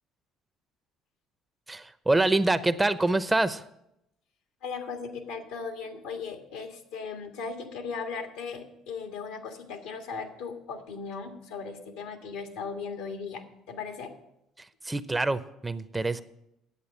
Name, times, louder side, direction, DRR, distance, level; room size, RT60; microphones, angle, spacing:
voice 1, 1.7-3.6 14.8-16.2, right 2 dB, 15° right, 14 dB, 0.7 m, -25 dB
voice 2, 4.6-14.1, left 5 dB, 80° left, 5 dB, 1.6 m, -37 dB
9.7 x 8.3 x 7.5 m, 0.82 s
hypercardioid pair, 65°, 0 cm